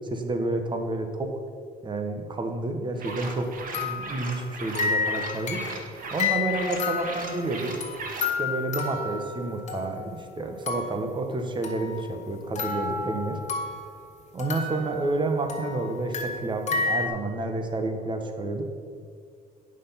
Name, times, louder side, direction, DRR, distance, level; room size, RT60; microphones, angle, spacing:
voice 1, 0.1-1.3 1.8-3.5 3.7-5.6 6.1-7.7 8.4-13.4 14.3-18.7, right 2 dB, 30° right, 5 dB, 1.2 m, -29 dB
sound 1, 3.0-3.3 3.7-10.2 10.7-11.1 11.6-14.0 14.4-17.1, left 5 dB, 45° left, 1.6 m, -31 dB
sound 2, 3.0-8.3, right 3 dB, 55° right, 1.4 m, -38 dB
9.0 x 6.3 x 5.6 m, 2.1 s
cardioid pair, 110°, 17 cm